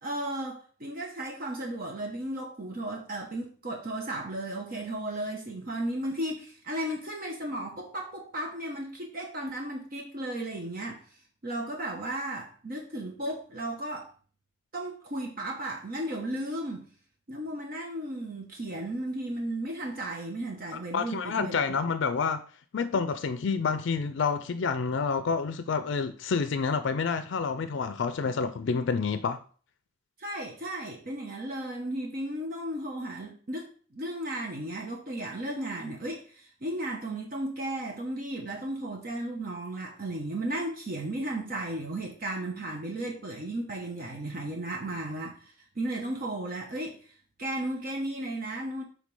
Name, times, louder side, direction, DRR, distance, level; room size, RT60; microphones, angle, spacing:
voice 1, 0.0-11.0 11.4-14.1 14.7-16.9 17.3-21.8 30.2-47.1 47.4-48.8, right 1 dB, 50° right, 1.0 m, -35 dB
voice 2, 20.9-22.4 22.7-29.4, left 5 dB, 65° left, 0.4 m, -28 dB
5.2 x 3.7 x 5.3 m
head